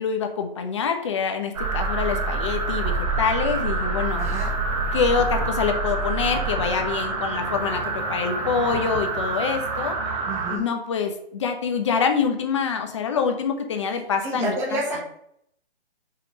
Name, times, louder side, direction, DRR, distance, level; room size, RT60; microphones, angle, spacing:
voice 1, 0.0-4.2 4.9-10.0 10.5-15.0, left 6 dB, 30° left, 5 dB, 1.0 m, -25 dB
sound 1, 1.5-10.6, right 3 dB, 35° right, 1.5 m, -26 dB
voice 2, 4.2-4.5 10.3-10.6 14.2-15.0, right 2 dB, 10° right, -2 dB, 1.2 m, -29 dB
5.8 x 5.2 x 6.3 m, 0.71 s
hypercardioid pair, 170°, 31 cm